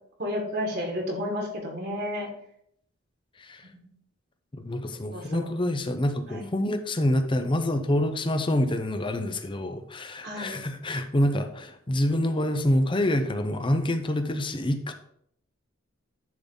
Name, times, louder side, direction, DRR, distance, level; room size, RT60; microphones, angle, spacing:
voice 1, 0.2-2.3 5.1-5.5 6.3-6.5 10.2-10.6, left 1 dB, 55° right, 0 dB, 1.9 m, -31 dB
voice 2, 4.5-14.9, left 1 dB, 25° left, 7 dB, 0.7 m, -26 dB
10.5 x 3.9 x 3.9 m, 0.69 s
head